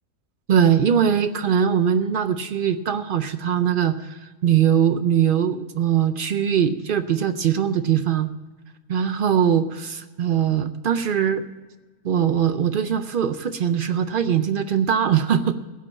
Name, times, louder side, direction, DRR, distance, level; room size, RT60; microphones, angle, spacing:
voice 1, 0.5-8.3 8.9-11.4 12.0-15.5, right 8 dB, 65° right, 10 dB, 0.5 m, -21 dB
15.5 x 5.3 x 8.3 m, 1.2 s
omnidirectional pair, 1.5 m